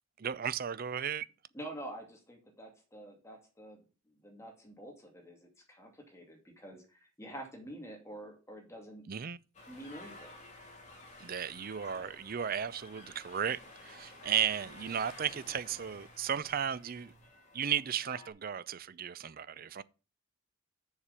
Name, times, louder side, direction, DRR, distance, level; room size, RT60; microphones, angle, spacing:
voice 1, 0.2-1.3 9.1-9.4 11.2-17.1 17.5-19.8, right 8 dB, 45° right, 0.5 m, -35 dB
voice 2, 1.5-9.0 9.7-10.4 11.9-12.2, right 1 dB, 15° left, 2.4 m, -48 dB
sound 1, 9.5-18.3, left 2 dB, 35° left, 2.9 m, -53 dB
7.3 x 6.7 x 6.8 m
head